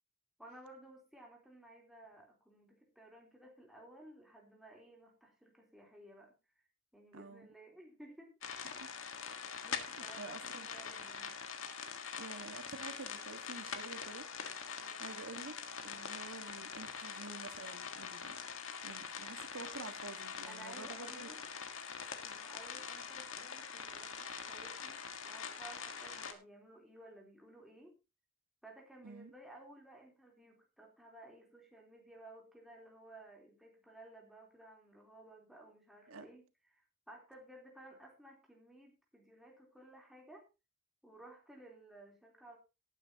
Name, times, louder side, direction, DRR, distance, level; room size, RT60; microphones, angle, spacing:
voice 1, 0.4-6.3 6.9-8.3 9.6-11.3 14.8-15.1 20.5-21.4 22.2-27.9 28.6-36.4 36.7-40.5 41.0-42.6, right 1 dB, ahead, -1 dB, 3.6 m, -56 dB
voice 2, 7.1-7.5 8.8-8.9 9.8-10.7 12.2-14.2 15.0-15.5 15.8-18.4 18.8-21.3 29.0-29.3 36.1-36.3, right 3 dB, 85° right, 7 dB, 1.6 m, -49 dB
sound 1, 8.4-26.3, left 6 dB, 65° left, 1.6 m, -44 dB
18.5 x 9.1 x 2.9 m, 0.27 s
head